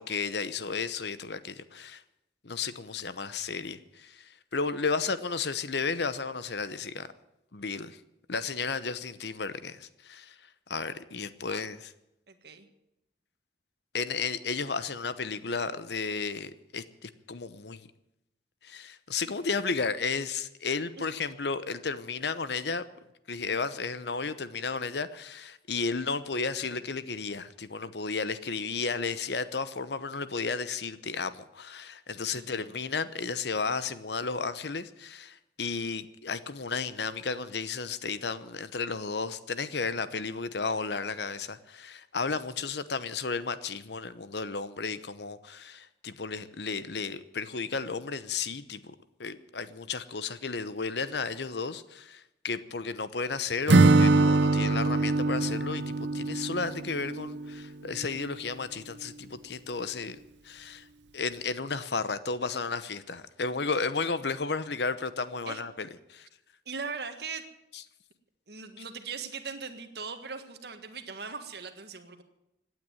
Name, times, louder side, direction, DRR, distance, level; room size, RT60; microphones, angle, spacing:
voice 1, 0.0-2.0 2.4-7.1 7.5-8.0 8.3-10.4 10.7-11.9 13.9-17.9 18.6-22.8 23.3-48.9 49.2-60.2 60.4-60.9 61.1-66.3, left 4 dB, 70° left, 14 dB, 0.9 m, -33 dB
voice 2, 12.3-12.7 21.0-21.3 32.4-32.7 65.5-65.6 66.7-67.4 68.5-72.2, right 5 dB, 60° right, 7 dB, 1.7 m, -40 dB
Acoustic guitar / Strum, 53.7-57.6, right 3 dB, 75° right, 0.7 m, -23 dB
17.0 x 9.4 x 9.2 m, 0.87 s
head